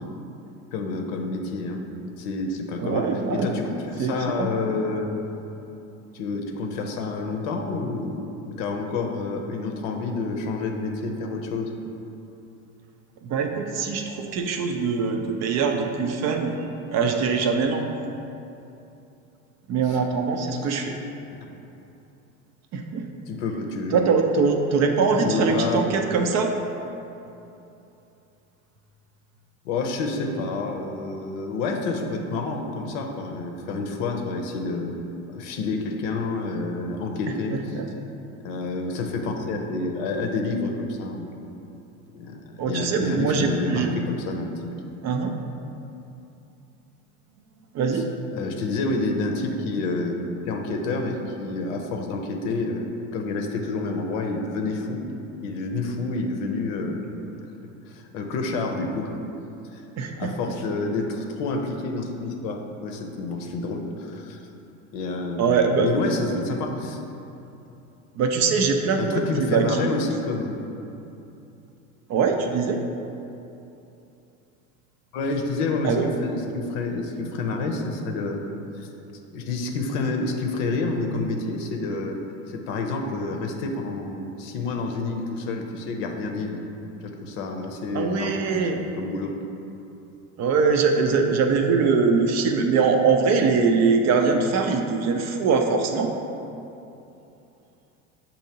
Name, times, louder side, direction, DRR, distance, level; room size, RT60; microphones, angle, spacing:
voice 1, 0.7-1.8 2.2-5.2 6.1-11.7 19.9-20.0 21.3-21.5 23.3-24.1 25.2-25.8 29.6-35.0 35.3-37.8 38.4-41.3 42.1-44.7 47.9-48.0 48.3-50.1 50.5-55.1 55.4-57.1 57.9-59.1 59.7-59.8 60.2-64.4 64.9-67.0 69.0-70.7 75.1-78.4 78.8-78.9 79.3-86.6 87.0-89.4, left 3 dB, 65° left, 3 dB, 0.7 m, -28 dB
voice 2, 2.8-3.5 4.0-4.5 13.2-17.9 19.7-20.9 22.7-23.1 23.9-26.5 37.5-37.9 42.6-43.9 45.0-45.3 47.7-48.1 60.0-60.3 65.4-65.9 68.2-69.9 72.1-72.8 75.8-76.0 87.9-88.8 90.4-96.1, right 5 dB, 40° right, 4 dB, 0.4 m, -22 dB
7.0 x 2.7 x 2.8 m, 2.8 s
hypercardioid pair, 85°, 42 cm